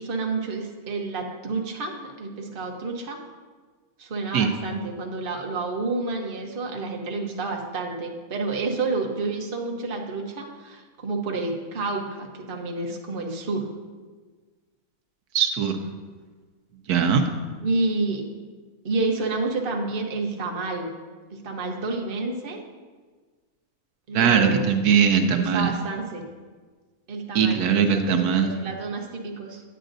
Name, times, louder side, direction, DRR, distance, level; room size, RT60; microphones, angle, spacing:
voice 1, 0.0-3.2 4.0-13.7 17.6-18.2 18.8-20.9 21.3-22.6 24.1-24.6 25.0-26.2 27.1-29.6, right 3 dB, 40° right, 1 dB, 1.0 m, -29 dB
voice 2, 15.3-15.8 16.9-17.2 24.1-25.7 27.3-28.5, right 7 dB, 80° right, 5 dB, 1.2 m, -20 dB
9.9 x 8.9 x 2.6 m, 1.4 s
omnidirectional pair, 1.6 m